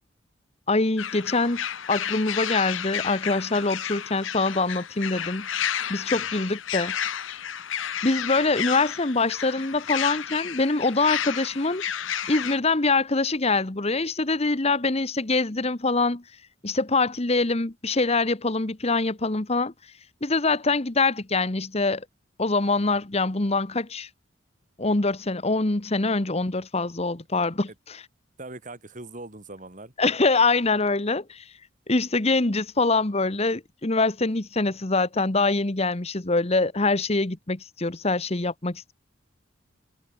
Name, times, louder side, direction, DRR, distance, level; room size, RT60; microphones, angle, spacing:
voice 1, 0.7-5.5 5.9-6.9 8.0-11.8 12.3-16.2 16.6-19.7 20.2-22.0 22.4-24.1 24.8-28.0 30.0-31.4 31.9-38.9, left 3 dB, 35° left, 1.2 m, -24 dB
sound 1, 1.0-12.6, left 9 dB, 90° left, 1.2 m, -31 dB
voice 2, 28.4-29.9, right 2 dB, 40° right, 2.8 m, -41 dB
head